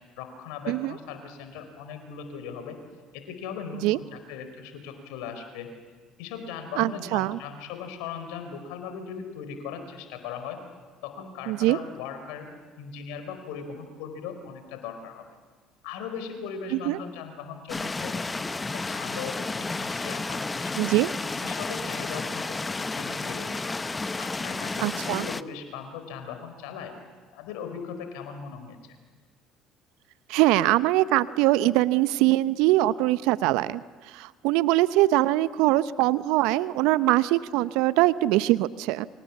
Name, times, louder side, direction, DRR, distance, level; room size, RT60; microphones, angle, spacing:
voice 1, 0.2-2.8 3.1-5.7 6.2-10.6 11.0-15.4 15.8-18.2 18.7-20.9 21.4-23.7 24.2-26.9 27.3-29.0, left 6 dB, 70° left, 7 dB, 4.5 m, -39 dB
voice 2, 6.8-7.4 11.5-11.8 16.9-17.0 20.8-21.1 24.8-25.3 30.3-33.8 34.1-39.1, right 17 dB, 70° right, 16 dB, 0.7 m, -22 dB
sound 1, 17.7-25.4, left 3 dB, 20° left, 0.9 m, -32 dB
28.5 x 25.5 x 7.2 m, 1.5 s
hypercardioid pair, 60°, 0 cm